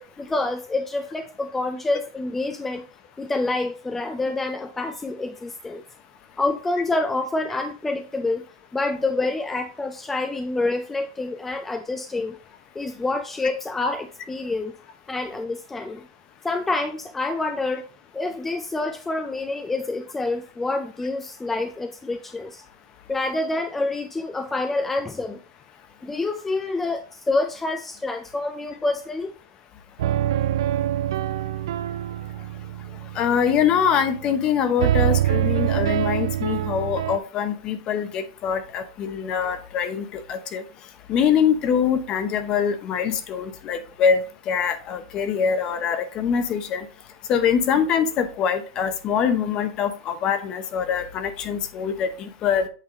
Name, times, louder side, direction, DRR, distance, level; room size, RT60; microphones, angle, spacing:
voice 1, 0.2-2.8 3.2-5.8 6.4-8.5 8.7-12.4 12.8-14.7 15.1-16.1 16.4-17.8 18.1-22.6 23.1-25.4 26.0-29.3, left 2 dB, 10° left, 6 dB, 0.4 m, -27 dB
sound 1, 30.0-34.5 34.8-37.2, right 12 dB, 80° right, 0.3 m, -25 dB
voice 2, 33.2-40.6 41.1-46.9 47.3-52.7, left 7 dB, 30° left, 11 dB, 0.8 m, -24 dB
8.2 x 3.4 x 3.9 m, 0.39 s
supercardioid pair, 145°, 2 cm